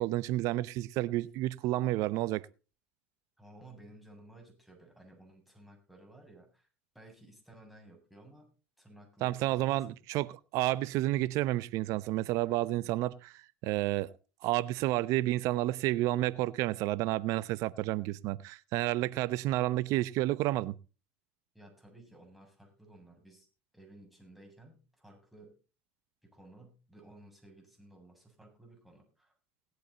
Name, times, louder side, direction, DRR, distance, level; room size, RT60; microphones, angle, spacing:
voice 1, 0.0-2.5 9.2-14.1 14.4-20.7, right 16 dB, 60° right, 0.8 m, -30 dB
voice 2, 3.4-6.7 6.9-8.5 8.8-9.9 21.5-23.5 23.7-25.5 26.3-29.3, right 1 dB, ahead, 7.5 m, -56 dB
18.5 x 8.3 x 4.0 m
hypercardioid pair, 90°, 6 cm